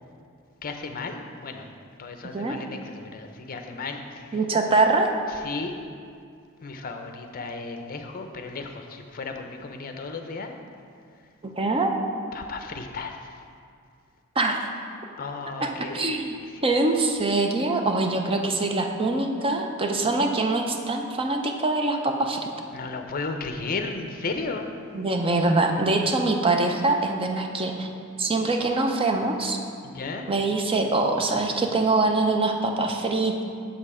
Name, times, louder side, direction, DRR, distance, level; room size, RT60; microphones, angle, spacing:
voice 1, 0.6-1.7 2.0-4.4 5.3-5.7 6.6-10.5 12.3-13.3 15.2-16.8 22.7-24.7 29.8-30.3, left 3 dB, 45° left, 5 dB, 0.6 m, -34 dB
voice 2, 4.3-5.1 11.4-11.9 14.4-14.7 15.6-16.4 16.6-22.4 24.9-27.9 28.2-29.6 30.3-33.4, right 2 dB, 25° right, 3 dB, 0.6 m, -24 dB
7.1 x 5.3 x 4.9 m, 2.3 s
head